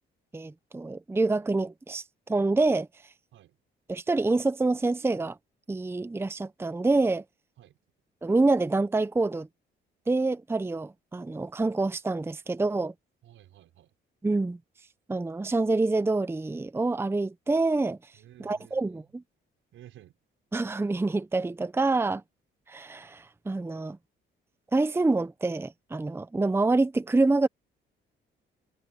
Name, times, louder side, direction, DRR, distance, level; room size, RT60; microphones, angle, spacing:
voice 1, 0.3-2.9 3.9-5.4 5.7-7.2 8.2-9.5 10.1-12.9 14.2-14.6 15.1-18.0 18.4-19.2 20.5-22.2 22.7-24.0 24.7-27.5, right 3 dB, 10° right, 0.7 m, -26 dB
voice 2, 13.2-13.9 18.1-19.0 19.7-20.2, right 12 dB, 80° right, 5.9 m, -53 dB
cardioid pair, 90°, 20 cm